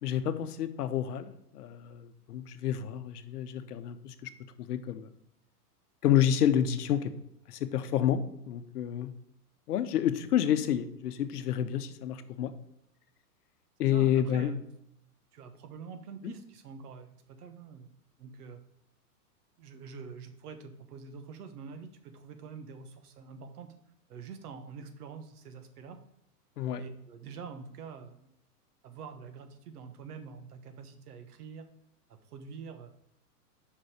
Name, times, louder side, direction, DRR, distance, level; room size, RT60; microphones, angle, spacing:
voice 1, 0.0-4.3 4.7-5.1 6.0-7.1 7.5-9.1 9.7-12.5 13.8-14.6 26.6-26.8, left 10 dB, 75° left, 11 dB, 0.8 m, -29 dB
voice 2, 13.8-14.6 15.3-17.9 18.2-18.6 19.6-23.7 24.1-26.0 26.8-28.3 28.8-31.7 32.1-32.9, right 5 dB, 70° right, 8 dB, 1.3 m, -46 dB
5.5 x 5.0 x 4.8 m, 0.79 s
hypercardioid pair, 120°, 47 cm